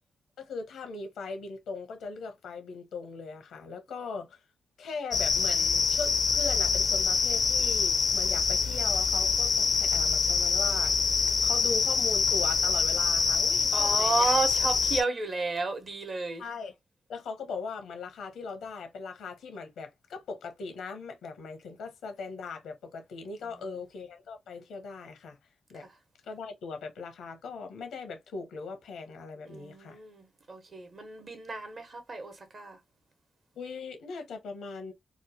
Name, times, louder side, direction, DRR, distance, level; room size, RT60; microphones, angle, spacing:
voice 1, 0.4-4.4 4.8-11.0 11.4-14.3 16.4-16.8 17.1-25.4 25.7-25.9 26.2-30.0 33.6-34.9, left 4 dB, 85° left, 0.7 m, -39 dB
sound 1, 5.1-15.0, left 5 dB, 55° left, 0.4 m, -25 dB
voice 2, 13.7-16.4 29.5-32.8, right 3 dB, 50° right, 1.0 m, -32 dB
2.9 x 2.1 x 2.6 m
supercardioid pair, 55°, 0 cm